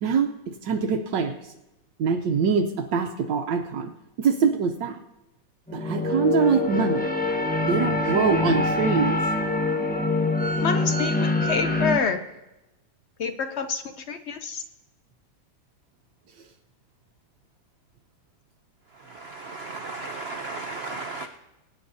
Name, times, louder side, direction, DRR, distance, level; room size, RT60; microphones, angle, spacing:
voice 1, 0.0-1.5 2.0-3.9 4.2-5.0 5.7-7.0 7.7-9.2, right 5 dB, 70° right, 6 dB, 1.4 m, -24 dB
sound 1, 5.7-12.0, left 2 dB, 10° left, 0.6 m, -25 dB
voice 2, 10.6-12.2 13.2-14.6, left 5 dB, 65° left, 8 dB, 0.6 m, -27 dB
voice 3, 19.1-21.3, right 3 dB, 90° right, 6 dB, 0.5 m, -35 dB
23.5 x 9.7 x 2.7 m, 0.96 s
omnidirectional pair, 2.1 m